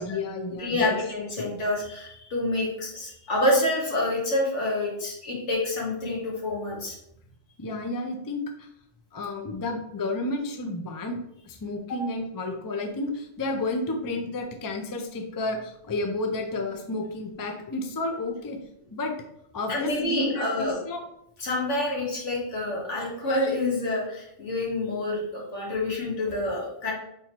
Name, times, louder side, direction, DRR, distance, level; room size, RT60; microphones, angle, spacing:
voice 1, 0.0-0.9 1.4-1.5 7.6-8.7 9.1-11.2 11.5-18.6 18.9-19.1 19.5-21.0, left 2 dB, 30° left, 3 dB, 0.4 m, -31 dB
voice 2, 0.6-6.9 19.7-20.8 21.4-26.9, left 1 dB, 85° left, -3 dB, 1.7 m, -27 dB
4.4 x 3.8 x 2.9 m, 0.76 s
omnidirectional pair, 1.2 m